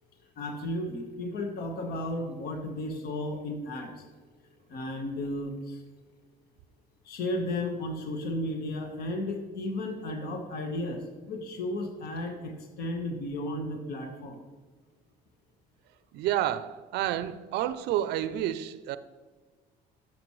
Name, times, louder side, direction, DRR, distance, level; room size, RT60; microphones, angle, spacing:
voice 1, 0.3-4.0 4.7-5.8 7.0-14.4, left 1 dB, 70° left, 1.3 m, -34 dB
voice 2, 16.1-19.0, right 12 dB, 80° right, 0.5 m, -30 dB
11.0 x 7.2 x 3.1 m
cardioid pair, 110°, 17 cm